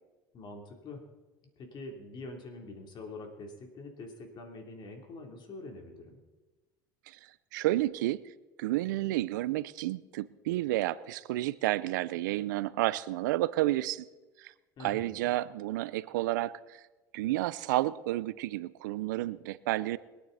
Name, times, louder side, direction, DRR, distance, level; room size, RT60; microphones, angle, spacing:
voice 1, 0.3-1.0 1.6-6.2 14.8-15.3, left 2 dB, 50° left, 3 dB, 3.3 m, -45 dB
voice 2, 7.5-8.2 8.6-14.1 14.4-14.5 14.8-16.6 17.1-20.0, right 16 dB, 90° right, 18 dB, 0.5 m, -31 dB
23.0 x 9.3 x 4.1 m, 1.2 s
supercardioid pair, 85°, 10 cm